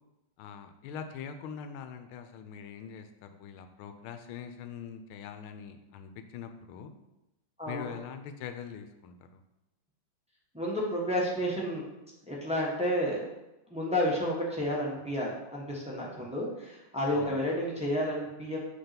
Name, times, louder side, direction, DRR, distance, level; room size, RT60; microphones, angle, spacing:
voice 1, 0.4-6.9 7.7-9.4 17.1-17.4, left 7 dB, 85° left, 8 dB, 1.5 m, -43 dB
voice 2, 7.6-8.0 10.5-11.8 12.3-13.2 13.7-18.6, equal, 5° right, -4 dB, 0.6 m, -31 dB
5.5 x 3.6 x 5.8 m, 0.95 s
omnidirectional pair, 2.3 m